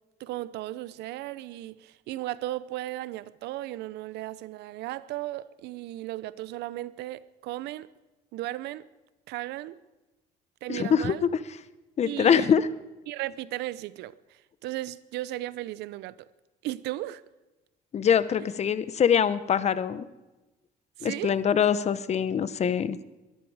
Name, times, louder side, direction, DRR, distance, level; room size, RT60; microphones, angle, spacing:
voice 1, 0.2-7.9 8.3-8.9 9.3-9.7 10.6-11.3 12.1-12.5 13.1-16.3 16.6-17.2 21.0-21.4, right 16 dB, 85° right, 0.7 m, -36 dB
voice 2, 10.7-11.3 12.0-12.7 17.9-20.0 21.0-23.0, left 7 dB, 40° left, 0.9 m, -24 dB
22.5 x 12.5 x 4.9 m
cardioid pair, 110°, 17 cm